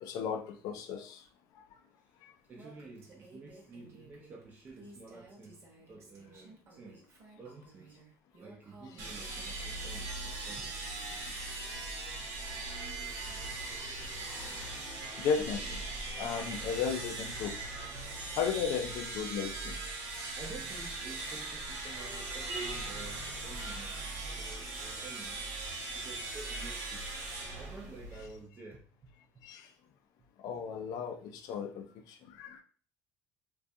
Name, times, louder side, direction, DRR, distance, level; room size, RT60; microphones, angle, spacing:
voice 1, 0.0-1.2 2.2-2.3 10.1-10.3 13.1-13.3 13.7-13.9 14.5-14.7 15.2-15.8 16.2-17.6 18.4-19.8 29.4-29.7 30.4-32.6, left 7 dB, 65° left, 0.3 m, -35 dB
voice 2, 2.5-7.0 7.4-8.0 8.4-10.7 20.4-25.5 25.9-27.1 27.6-29.5, right 3 dB, 25° right, 0.4 m, -50 dB
Female speech woman speaking, 2.5-11.4, right 2 dB, 45° right, 0.8 m, -57 dB
sound 1, 9.0-28.4, right 2 dB, 80° right, 1.1 m, -40 dB
2.4 x 2.3 x 2.6 m
cardioid pair, 150°, 7 cm